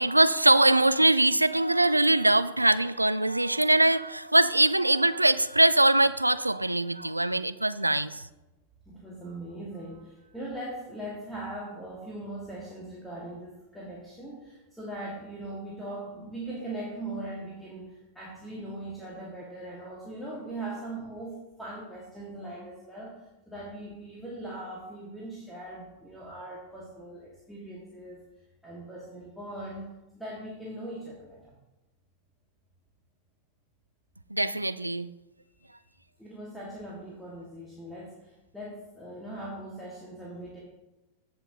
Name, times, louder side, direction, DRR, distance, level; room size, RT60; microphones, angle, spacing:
voice 1, 0.0-8.2 34.3-35.1, right 2 dB, 85° right, 14 dB, 0.3 m, -22 dB
voice 2, 8.8-23.2 23.5-28.2 28.6-31.4 35.6-35.8 36.2-40.6, right 1 dB, ahead, -5 dB, 1.8 m, -40 dB
15.0 x 5.8 x 2.8 m, 1.0 s
figure-of-eight pair, 90°, 0 cm